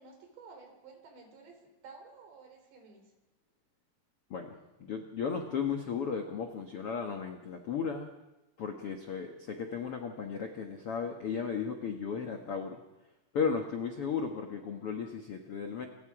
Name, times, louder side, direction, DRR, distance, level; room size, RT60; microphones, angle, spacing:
voice 1, 0.0-3.1, right 4 dB, 90° right, 3 dB, 6.0 m, -53 dB
voice 2, 4.3-8.1 8.6-12.8 13.3-15.8, left 6 dB, 80° left, 4 dB, 1.2 m, -35 dB
28.0 x 23.0 x 4.9 m, 1.0 s
omnidirectional pair, 4.9 m